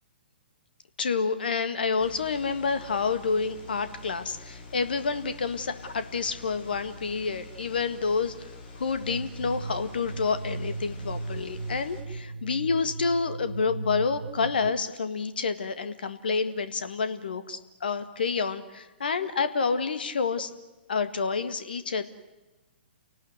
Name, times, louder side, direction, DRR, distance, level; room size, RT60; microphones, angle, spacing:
voice 1, 1.0-20.5 20.9-22.0, left 5 dB, 60° left, 11 dB, 1.8 m, -29 dB
sound 1, 2.0-12.0, left 2 dB, 30° left, 6.0 m, -46 dB
sound 2, 9.0-14.7, right 3 dB, 75° right, 1.1 m, -37 dB
29.5 x 18.5 x 8.1 m, 1.1 s
figure-of-eight pair, 120°, 6 cm